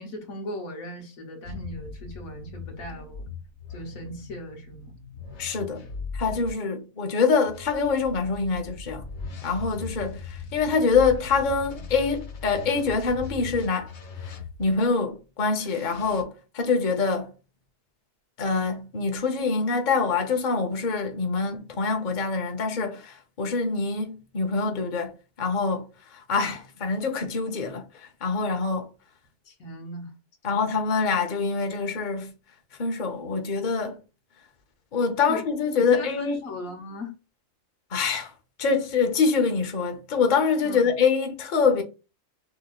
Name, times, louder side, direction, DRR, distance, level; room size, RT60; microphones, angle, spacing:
voice 1, 0.0-3.2 3.7-4.9 11.8-11.9 29.5-30.1 30.5-30.8 35.3-35.4 35.8-37.1 40.6-40.9, left 1 dB, 90° left, 1.6 m, -38 dB
sound 1, 1.4-6.5 7.5-14.8 15.5-16.2, left 4 dB, 60° left, 1.2 m, -39 dB
voice 2, 5.4-5.8 6.1-9.0 9.4-13.9 14.6-17.3 18.4-27.9 28.2-28.9 30.4-32.3 32.8-34.0 34.9-36.4 37.9-38.3 38.6-41.8, left 4 dB, 40° left, 0.9 m, -25 dB
6.4 x 3.1 x 2.4 m
omnidirectional pair, 1.4 m